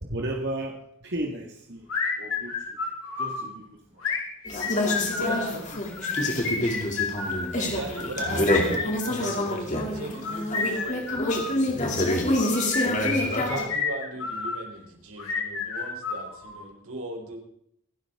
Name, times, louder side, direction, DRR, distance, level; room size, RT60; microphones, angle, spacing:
voice 1, 0.0-1.9 2.2-2.8 3.2-4.2 4.6-5.8 8.7-8.8 9.3-9.4, right 1 dB, 55° right, 0 dB, 1.9 m, -35 dB
sound 1, 1.9-3.4 4.0-5.4 5.9-7.5 8.0-9.5 10.1-11.6 12.3-14.6 15.2-16.6, left 5 dB, 85° left, 5.3 m, -30 dB
sound 2, 4.5-13.6, left 1 dB, 35° left, 2.9 m, -27 dB
voice 2, 5.1-5.6 7.6-12.3 13.5-17.4, right 2 dB, 90° right, 2 dB, 4.1 m, -38 dB
26.0 x 12.0 x 3.8 m, 0.71 s
head